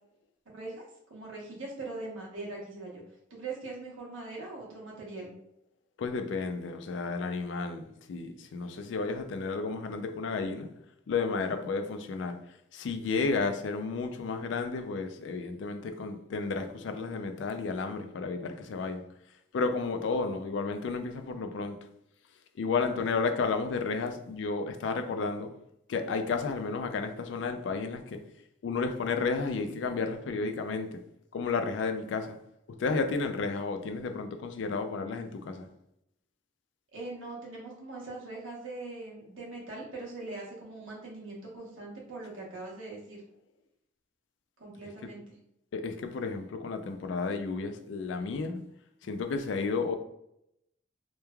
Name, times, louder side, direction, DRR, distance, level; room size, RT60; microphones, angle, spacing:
voice 1, 0.5-3.0 3.3-5.3 36.9-43.2 44.6-45.4, right 3 dB, 85° right, -3 dB, 0.9 m, -41 dB
voice 2, 6.0-10.7 11.1-12.4 12.7-19.0 19.5-21.8 22.6-25.5 25.9-28.2 28.6-31.0 31.3-32.4 32.8-35.7 45.7-48.6 49.0-50.0, left 4 dB, 65° left, 7 dB, 0.3 m, -32 dB
3.1 x 2.2 x 2.2 m, 0.78 s
head